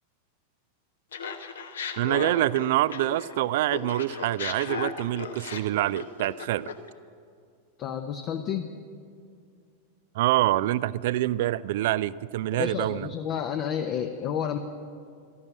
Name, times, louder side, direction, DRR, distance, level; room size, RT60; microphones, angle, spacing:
Laughter, 1.1-3.4 3.7-6.9, left 6 dB, 65° left, 1.0 m, -36 dB
voice 1, 2.0-6.7 10.2-13.1, right 15 dB, 55° right, 19 dB, 0.4 m, -26 dB
voice 2, 7.8-8.7 12.5-14.6, left 8 dB, 35° left, 6 dB, 0.8 m, -30 dB
13.0 x 11.0 x 8.7 m, 2.2 s
figure-of-eight pair, 90°, 0 cm